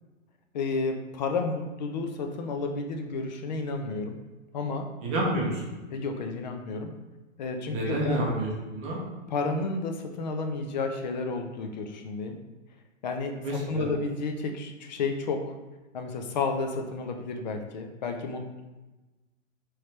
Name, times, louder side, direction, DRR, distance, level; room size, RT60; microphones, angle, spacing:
voice 1, 0.5-4.2 4.5-4.9 5.9-6.9 7.4-8.2 9.3-12.4 13.0-15.5 15.9-18.6, left 3 dB, 40° left, 5 dB, 0.4 m, -31 dB
voice 2, 5.0-5.6 7.7-9.0 13.4-13.9, right 1 dB, 15° right, -3 dB, 0.7 m, -29 dB
4.3 x 3.2 x 3.2 m, 1.1 s
hypercardioid pair, 160°, 38 cm